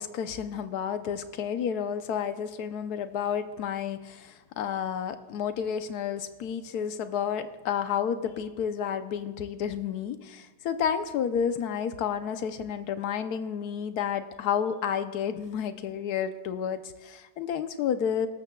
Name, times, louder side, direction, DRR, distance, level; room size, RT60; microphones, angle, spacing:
voice 1, 0.0-18.3, left 8 dB, 80° left, 9 dB, 1.3 m, -31 dB
18.5 x 13.5 x 2.3 m, 1.3 s
omnidirectional pair, 1.7 m